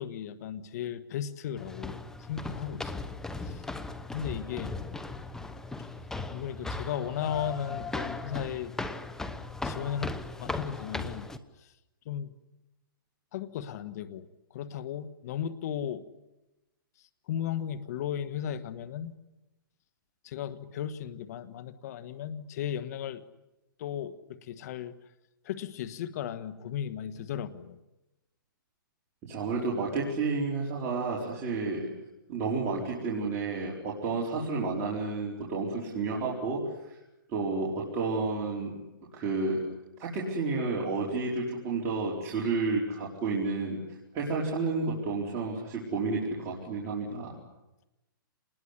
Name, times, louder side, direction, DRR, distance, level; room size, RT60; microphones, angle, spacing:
voice 1, 0.0-3.1 3.4-3.7 4.1-4.7 6.3-8.7 9.6-11.3 11.6-11.7 12.0-12.3 13.3-16.0 17.3-19.2 20.2-23.2 23.8-24.9 25.4-27.8, left 9 dB, 50° left, 12 dB, 1.5 m, -36 dB
sound 1, 1.6-11.4, left 3 dB, 5° left, 1.0 m, -38 dB
voice 2, 29.2-31.9 32.3-37.0 37.3-38.8 39.1-39.6 40.0-43.8 44.1-47.3, right 3 dB, 25° right, -5 dB, 4.8 m, -31 dB
27.0 x 20.5 x 9.9 m, 0.99 s
hypercardioid pair, 150°, 11 cm